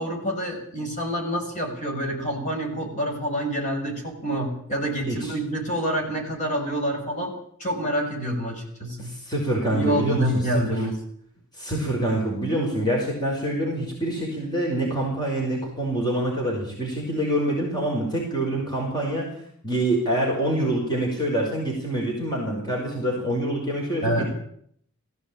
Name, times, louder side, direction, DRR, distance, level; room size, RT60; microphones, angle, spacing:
voice 1, 0.0-7.3 7.6-9.1 9.7-11.0 24.0-24.3, equal, 35° left, 0 dB, 6.3 m, -27 dB
voice 2, 9.0-10.4 10.7-10.8 11.5-19.3 19.6-24.2, right 1 dB, 20° left, -2 dB, 5.4 m, -26 dB
19.0 x 16.0 x 8.8 m, 0.66 s
head